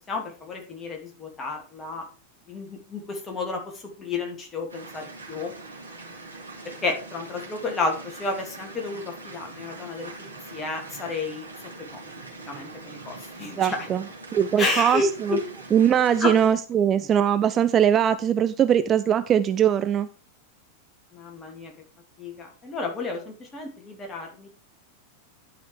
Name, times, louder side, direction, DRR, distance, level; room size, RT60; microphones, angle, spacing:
voice 1, 0.1-2.0 2.5-3.6 4.0-5.5 6.8-11.5 11.9-12.0 12.5-13.8 14.6-15.4 16.2-16.3 21.1-21.7 22.2-24.5, left 3 dB, 20° left, 2 dB, 2.8 m, -31 dB
sound 1, 4.7-16.5, right 3 dB, 80° right, 2.8 m, -42 dB
voice 2, 13.6-14.0 14.3-15.4 15.7-20.1, right 9 dB, 25° right, 12 dB, 0.5 m, -21 dB
11.5 x 5.1 x 4.7 m, 0.36 s
figure-of-eight pair, 90°, 0 cm